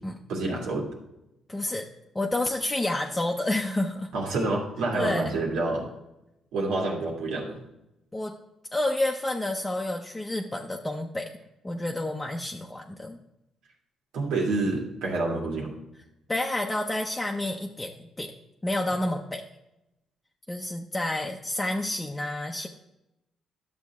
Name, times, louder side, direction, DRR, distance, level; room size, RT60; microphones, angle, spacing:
voice 1, 0.3-0.9 4.1-5.9 6.5-7.6 14.1-15.7, right 2 dB, 90° right, -1 dB, 2.2 m, -28 dB
voice 2, 1.5-1.9 2.1-4.1 4.9-5.4 8.1-8.3 8.7-11.3 11.6-13.2 16.3-18.3 18.6-19.4 20.5-22.7, left 1 dB, 15° left, 1 dB, 0.7 m, -29 dB
11.0 x 6.9 x 3.5 m, 0.89 s
cardioid pair, 90°, 0 cm